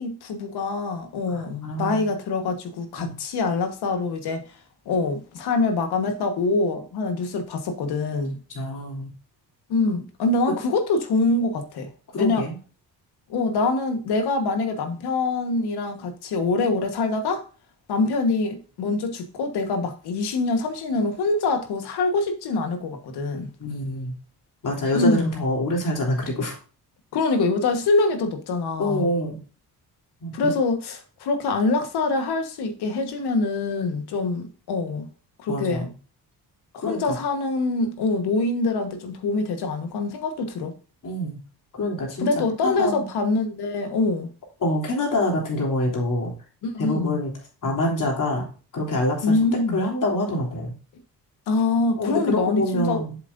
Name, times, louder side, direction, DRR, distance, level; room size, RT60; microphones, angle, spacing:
voice 1, 0.0-4.4 4.8-8.4 9.7-11.9 12.2-12.4 13.3-17.4 17.9-23.5 24.9-25.4 27.1-29.1 30.3-35.1 35.4-35.9 36.9-40.7 42.2-44.3 46.6-47.2 49.2-49.8 51.5-53.0, left 3 dB, 90° left, 1.4 m, -24 dB
voice 2, 1.3-2.1 3.0-3.1 8.5-9.1 12.1-12.6 23.6-24.1 24.6-26.6 28.8-29.4 30.2-30.5 35.5-35.9 36.8-37.2 41.0-41.4 41.7-42.3 42.6-43.1 44.6-46.3 46.8-47.3 47.6-48.5 48.7-50.7 52.0-53.2, left 1 dB, 55° left, 3.3 m, -26 dB
7.6 x 7.4 x 2.6 m
cardioid pair, 115°, 38 cm